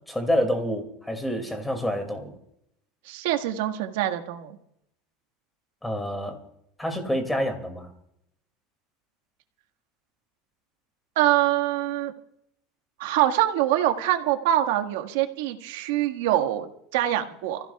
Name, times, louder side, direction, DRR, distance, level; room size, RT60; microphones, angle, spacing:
voice 1, 0.1-2.3 5.8-6.4 6.8-7.9, equal, 5° left, 5 dB, 2.4 m, -27 dB
voice 2, 3.1-4.6 11.2-12.1 13.0-17.6, right 13 dB, 85° right, 6 dB, 1.7 m, -24 dB
29.0 x 16.0 x 2.4 m, 0.76 s
cardioid pair, 170°, 0 cm